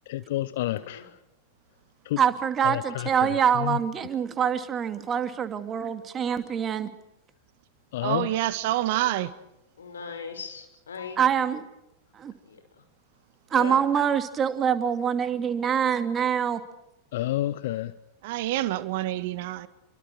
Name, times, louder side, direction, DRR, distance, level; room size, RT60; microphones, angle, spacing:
voice 1, 0.1-1.0 7.9-8.3 11.0-11.1 17.1-17.9, left 15 dB, 55° left, 15 dB, 0.9 m, -29 dB
voice 2, 0.7-1.0 9.8-11.2 12.5-12.6 13.5-13.7, left 6 dB, 70° left, 6 dB, 5.8 m, -38 dB
voice 3, 2.2-6.9 11.2-11.7 12.1-12.3 13.5-16.6, right 8 dB, 25° right, 9 dB, 2.5 m, -25 dB
voice 4, 8.0-9.3 18.2-19.7, right 14 dB, 50° right, 13 dB, 1.8 m, -27 dB
29.5 x 25.0 x 4.8 m, 0.88 s
figure-of-eight pair, 90°, 0 cm